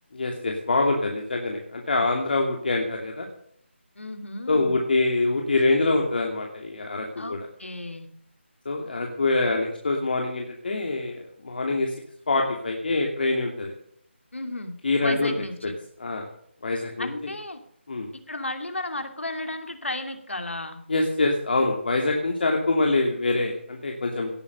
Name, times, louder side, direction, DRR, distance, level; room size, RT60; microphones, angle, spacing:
voice 1, 0.1-3.3 4.5-7.4 8.6-11.2 11.4-11.9 12.3-13.7 14.8-15.3 16.0-16.2 16.6-17.1 17.9-18.1 20.9-24.3, left 2 dB, 50° left, 1 dB, 2.7 m, -25 dB
voice 2, 4.0-4.8 7.1-8.1 14.3-15.8 17.0-17.6 18.3-20.8, left 2 dB, 75° left, 7 dB, 2.8 m, -34 dB
17.5 x 9.0 x 6.6 m, 0.66 s
figure-of-eight pair, 160°, 7 cm